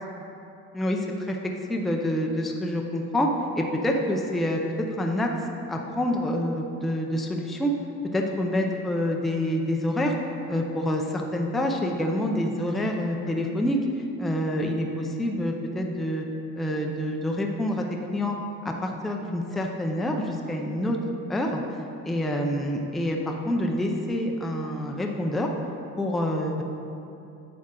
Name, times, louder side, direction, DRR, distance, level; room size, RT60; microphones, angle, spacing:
voice 1, 0.7-1.4 1.7-4.6 5.0-5.3 5.7-7.7 8.1-10.1 10.5-13.8 14.2-16.3 16.6-17.8 18.1-18.4 18.6-21.0 21.3-21.6 22.0-25.5 26.0-26.6, left 1 dB, ahead, 1 dB, 0.4 m, -27 dB
9.7 x 7.6 x 3.7 m, 2.8 s
cardioid pair, 180°, 30 cm